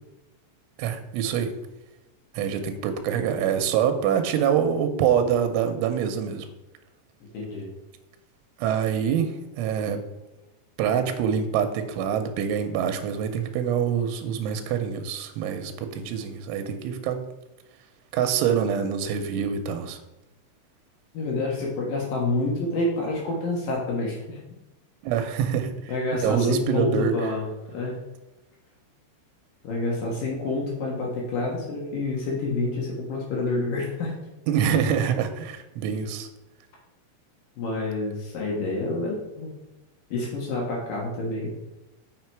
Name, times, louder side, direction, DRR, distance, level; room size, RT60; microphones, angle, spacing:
voice 1, 0.8-1.6 2.3-6.5 8.6-10.0 10.8-17.2 18.1-20.0 25.0-25.7 26.1-27.3 34.5-36.3, right 8 dB, 90° right, 7 dB, 3.2 m, -25 dB
voice 2, 7.2-7.7 21.1-24.4 25.9-28.0 29.6-34.1 37.6-39.5 40.1-41.5, left 2 dB, 60° left, -2 dB, 2.5 m, -28 dB
7.6 x 5.8 x 4.6 m, 0.99 s
omnidirectional pair, 5.4 m